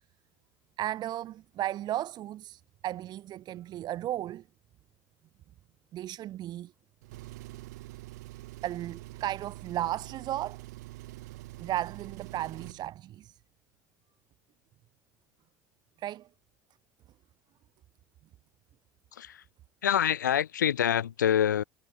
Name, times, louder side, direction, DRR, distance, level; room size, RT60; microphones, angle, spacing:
voice 1, 0.8-4.4 5.9-6.7 8.6-10.6 11.6-13.4 16.0-16.3, right 13 dB, 45° right, 1.7 m, -35 dB
Engine, 7.0-12.9, right 19 dB, 70° right, 2.9 m, -45 dB
voice 2, 19.1-19.4 19.8-21.6, left 9 dB, 80° left, 1.0 m, -26 dB
figure-of-eight pair, 70°, 10 cm